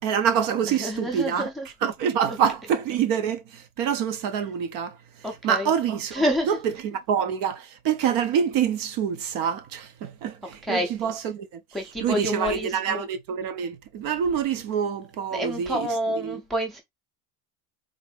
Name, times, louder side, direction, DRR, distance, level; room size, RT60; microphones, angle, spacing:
voice 1, 0.0-1.5 1.8-4.9 5.4-11.6 12.0-15.9 16.2-16.4, right 8 dB, 50° right, 0.5 m, -26 dB
voice 2, 0.7-1.7 2.3-2.4 5.2-5.7 6.1-6.5 10.6-10.9 11.7-13.1 15.3-16.8, equal, ahead, 0.4 m, -28 dB
3.8 x 2.6 x 3.2 m
cardioid pair, 160°, 45 cm